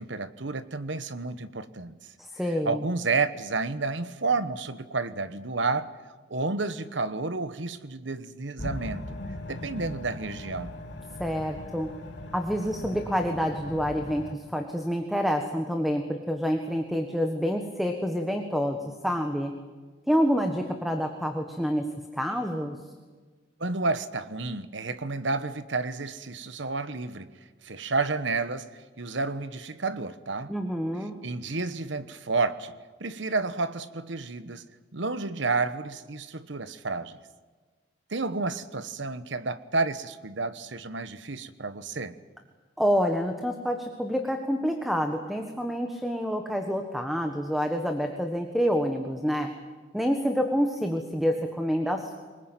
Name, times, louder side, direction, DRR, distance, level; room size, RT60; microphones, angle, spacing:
voice 1, 0.0-2.0 2.6-5.9 6.3-9.2 9.5-10.7 23.6-27.3 27.6-30.5 31.2-32.7 33.0-34.6 34.9-37.2 38.1-42.1, right 3 dB, 65° right, 13 dB, 1.2 m, -30 dB
voice 2, 2.2-2.8 11.2-11.9 12.3-14.2 14.5-18.8 19.0-19.5 20.1-21.8 22.1-22.8 30.5-31.2 42.8-49.5 49.9-52.2, equal, ahead, 4 dB, 1.5 m, -27 dB
sound 1, 8.6-14.3, left 1 dB, 60° left, 2.8 m, -39 dB
23.5 x 20.5 x 9.1 m, 1.4 s
head